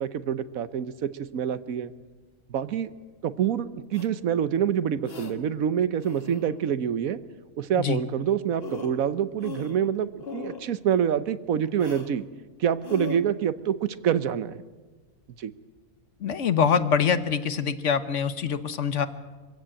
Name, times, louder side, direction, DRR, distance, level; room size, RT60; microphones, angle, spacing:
voice 1, 0.0-1.9 2.5-2.9 3.2-7.2 7.6-12.2 12.6-14.6 15.4-15.5, right 9 dB, 80° right, 14 dB, 1.3 m, -26 dB
sound 1, 3.9-4.1 5.0-5.3 6.0-6.5 8.2-8.3 8.6-9.0 9.4-9.9 10.2-10.7 11.8-12.1 12.8-13.2, left 4 dB, 45° left, 1.8 m, -38 dB
voice 2, 16.2-19.1, left 7 dB, 60° left, 12 dB, 1.3 m, -24 dB
24.0 x 15.5 x 8.8 m, 1.3 s
omnidirectional pair, 1.4 m